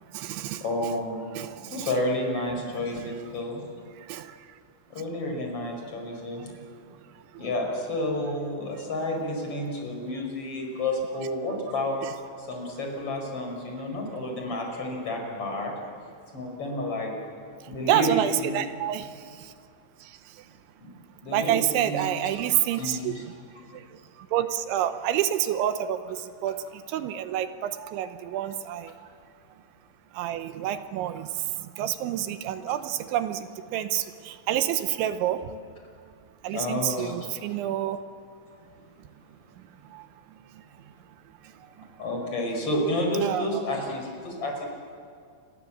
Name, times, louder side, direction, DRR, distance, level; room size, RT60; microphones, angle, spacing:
voice 1, 0.0-0.9 1.4-1.9 2.5-3.1 4.1-4.4 6.4-6.6 17.8-19.5 20.0-20.4 21.3-23.3 23.7-29.1 30.1-35.6 36.4-38.0 39.9-40.1 40.5-40.6 41.8-41.9 43.2-43.6, right 11 dB, 80° right, 10 dB, 3.2 m, -29 dB
voice 2, 0.6-1.3 1.7-3.6 4.9-6.5 7.4-12.0 12.4-15.7 16.3-17.1 17.7-18.5 20.8-20.9 21.2-22.1 22.8-23.2 36.5-37.3 42.0-44.7, left 1 dB, 30° left, 1 dB, 5.7 m, -30 dB
29.0 x 22.5 x 7.5 m, 2.2 s
omnidirectional pair, 5.5 m